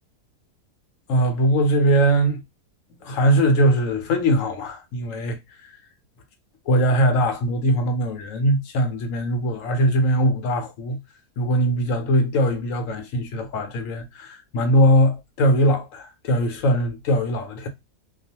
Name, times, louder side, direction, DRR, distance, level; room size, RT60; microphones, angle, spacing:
voice 1, 1.1-2.4 2.9-5.7 6.7-11.0 11.4-17.7, equal, 70° left, 1.0 m, -21 dB
2.4 x 2.3 x 2.7 m
omnidirectional pair, 1.6 m